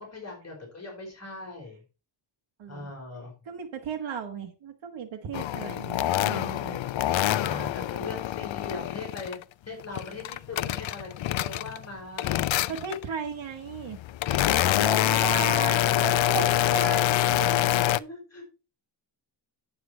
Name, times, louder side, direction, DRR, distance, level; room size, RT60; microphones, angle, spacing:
voice 1, 0.0-1.8 2.7-3.3 7.4-9.4 9.7-12.5 14.3-17.1 17.5-18.4, left 3 dB, 35° left, 0 dB, 4.6 m, -40 dB
voice 2, 2.6-2.9 3.4-6.9 12.7-14.0 14.8-17.8, right 6 dB, 80° right, 3 dB, 1.5 m, -36 dB
sound 1, 5.3-9.4 9.8-11.9 12.2-13.0 13.7-18.0, left 13 dB, 75° left, 0.6 m, -26 dB
9.4 x 7.9 x 4.4 m, 0.31 s
wide cardioid pair, 130°, 46 cm